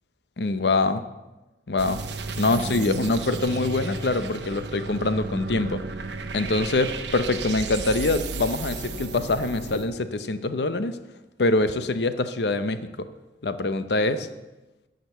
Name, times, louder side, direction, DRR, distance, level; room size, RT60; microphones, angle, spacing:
voice 1, 0.4-1.0 1.7-2.0 2.4-5.8 6.3-11.0 11.4-12.8 13.4-14.3, left 2 dB, 70° left, 11 dB, 0.7 m, -24 dB
sound 1, 1.8-9.9, right 4 dB, 80° right, 0.9 m, -33 dB
12.0 x 5.2 x 7.9 m, 1.1 s
head